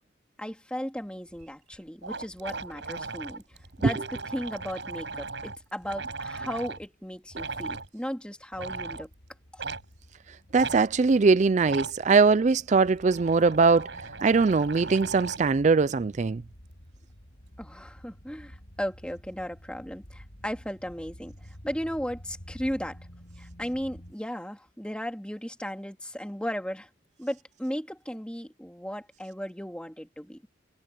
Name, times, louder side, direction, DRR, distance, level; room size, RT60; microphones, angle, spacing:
voice 1, 0.4-9.1 9.5-9.6 17.6-23.0 23.4-26.9 27.2-30.4, equal, 5° left, 2.5 m, -36 dB
sound 1, 1.4-1.5 1.7-1.8 2.0-6.8 7.3-7.9 8.5-9.1 9.6-9.8 10.6-10.8 11.6-12.0 12.7-15.5, right 4 dB, 70° right, 5.8 m, -37 dB
sound 2, 6.9-24.1, equal, 60° left, 6.8 m, -51 dB
voice 2, 10.5-13.9 14.2-16.4, right 4 dB, 40° right, 0.4 m, -21 dB
head